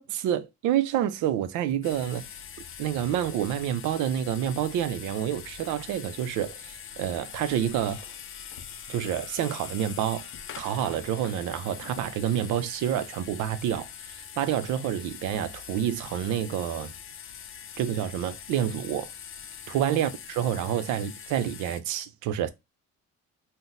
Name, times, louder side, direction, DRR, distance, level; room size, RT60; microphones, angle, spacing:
voice 1, 0.1-2.2 2.8-8.0 8.9-10.3 10.6-16.9 17.8-19.1 19.7-22.5, right 10 dB, 75° right, 0.5 m, -28 dB
sound 1, 1.8-21.8, left 8 dB, 45° left, 0.4 m, -43 dB
3.9 x 2.1 x 2.5 m
cardioid pair, 90°, 31 cm